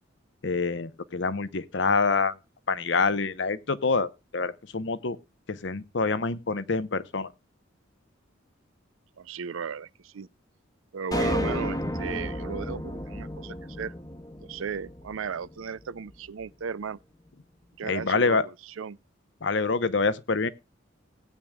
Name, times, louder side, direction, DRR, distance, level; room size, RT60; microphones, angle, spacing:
voice 1, 0.4-2.4 2.7-5.2 5.5-7.3 17.8-18.5 19.4-20.5, left 4 dB, 60° left, 0.8 m, -26 dB
voice 2, 9.2-10.3 10.9-13.9 14.4-17.0 17.8-18.4 18.8-19.0, right 6 dB, 90° right, 0.5 m, -35 dB
sound 1, 11.1-15.5, left 1 dB, 20° left, 1.0 m, -32 dB
18.0 x 8.7 x 2.3 m
head